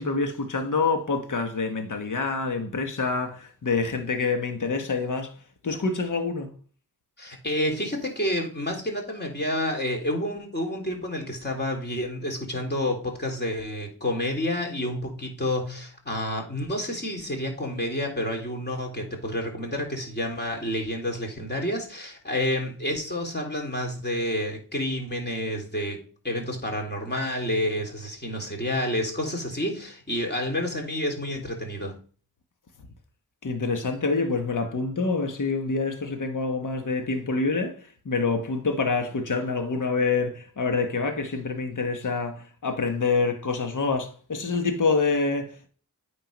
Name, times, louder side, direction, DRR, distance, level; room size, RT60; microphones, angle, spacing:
voice 1, 0.0-5.3 5.6-6.5 33.4-45.7, left 4 dB, 55° left, 1.4 m, -26 dB
voice 2, 7.2-32.0, left 1 dB, 25° left, 3.1 m, -29 dB
8.8 x 3.8 x 5.2 m
cardioid pair, 55°, 38 cm